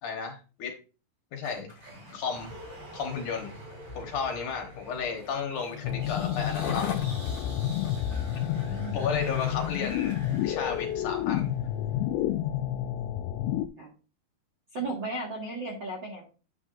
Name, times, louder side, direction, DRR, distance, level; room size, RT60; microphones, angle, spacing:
voice 1, 0.0-0.8 1.3-1.7 2.1-2.5 2.9-3.5 4.0-6.9 8.9-10.1 10.4-11.5, left 5 dB, 65° left, 3 dB, 2.4 m, -33 dB
sound 1, 1.4-11.6, equal, 60° right, 6.7 m, -47 dB
Skateboard, 1.6-10.4 11.0-11.1, left 7 dB, 50° left, 2.2 m, -42 dB
sound 2, 5.8-13.7, left 11 dB, 85° left, 2.4 m, -30 dB
voice 2, 8.2-9.0 13.8-13.9 14.7-16.2, right 2 dB, 45° right, -3 dB, 1.7 m, -36 dB
9.9 x 8.2 x 2.5 m, 0.35 s
omnidirectional pair, 4.3 m